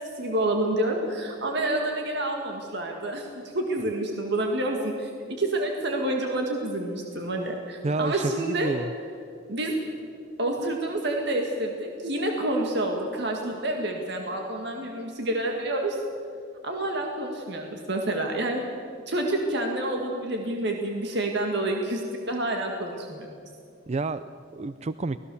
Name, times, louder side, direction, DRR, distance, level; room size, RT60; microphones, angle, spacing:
voice 1, 0.0-8.7 9.5-9.7 10.4-16.0 16.6-18.6 19.1-23.3, right 1 dB, 60° right, 2 dB, 1.9 m, -28 dB
voice 2, 7.8-8.9 23.9-25.2, right 3 dB, 35° right, 13 dB, 0.4 m, -29 dB
24.0 x 18.5 x 7.0 m, 2.4 s
head